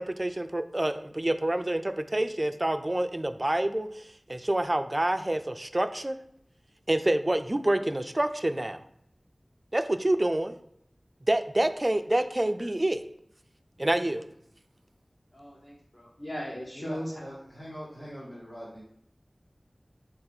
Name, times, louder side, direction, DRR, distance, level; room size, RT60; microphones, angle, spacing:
voice 1, 0.0-6.2 6.9-8.8 9.7-10.5 11.3-13.0 13.8-14.2, right 1 dB, 35° right, 10 dB, 0.3 m, -27 dB
voice 2, 15.3-17.3, equal, 50° left, -5 dB, 0.9 m, -38 dB
voice 3, 16.7-18.8, equal, 65° left, -8 dB, 1.5 m, -42 dB
4.2 x 2.7 x 3.9 m, 0.72 s
wide cardioid pair, 50°, 0 cm